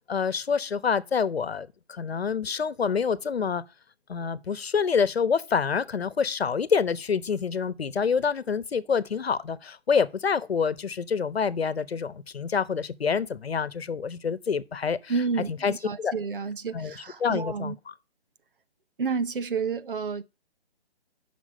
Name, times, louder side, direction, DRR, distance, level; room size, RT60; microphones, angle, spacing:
voice 1, 0.1-3.6 4.1-15.1 15.5-16.1 16.7-16.9 17.2-17.9, left 6 dB, 70° left, 1.0 m, -27 dB
voice 2, 15.1-17.8 19.0-20.2, right 5 dB, 55° right, 0.8 m, -30 dB
7.4 x 6.0 x 7.7 m
hypercardioid pair, 165°, 32 cm